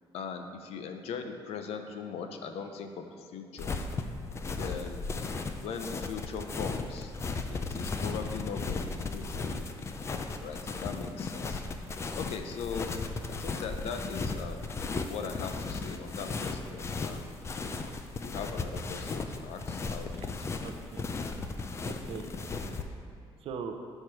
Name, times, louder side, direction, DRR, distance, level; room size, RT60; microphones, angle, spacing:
voice 1, 0.1-3.8 4.6-5.1 5.6-7.1 7.5-9.7 10.4-11.6 12.2-12.9 13.3-17.4 18.2-20.7, left 6 dB, 80° left, 6 dB, 0.6 m, -40 dB
sound 1, 3.6-22.8, left 3 dB, 25° left, 0.4 m, -36 dB
voice 2, 20.6-21.1 21.9-22.8 23.4-23.8, right 6 dB, 65° right, 5 dB, 0.6 m, -42 dB
6.7 x 4.5 x 5.8 m, 2.2 s
cardioid pair, 150°, 10 cm